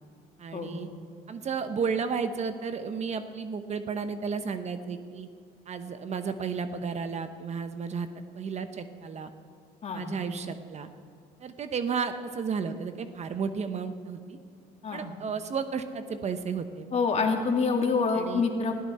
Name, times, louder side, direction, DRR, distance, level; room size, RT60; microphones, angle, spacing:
voice 1, 0.4-0.9 1.3-5.3 5.7-8.1 8.3-9.3 9.9-10.9 11.4-14.4 14.9-16.8 18.1-18.4, right 5 dB, 40° right, 9 dB, 1.0 m, -33 dB
voice 2, 16.9-18.7, left 4 dB, 40° left, 2 dB, 2.4 m, -26 dB
20.5 x 15.0 x 4.3 m, 2.3 s
cardioid pair, 110°, 17 cm